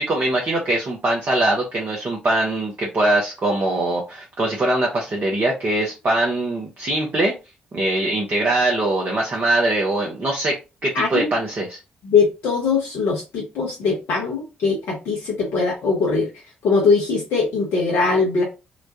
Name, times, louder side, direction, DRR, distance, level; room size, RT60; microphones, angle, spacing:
voice 1, 0.0-7.3 7.7-10.5 10.8-11.8, right 2 dB, 40° right, -1 dB, 0.8 m, -22 dB
voice 2, 10.9-11.3 12.0-16.3 16.6-18.4, left 4 dB, 55° left, -4 dB, 0.8 m, -21 dB
3.0 x 2.2 x 2.7 m, 0.28 s
figure-of-eight pair, 40°, 5 cm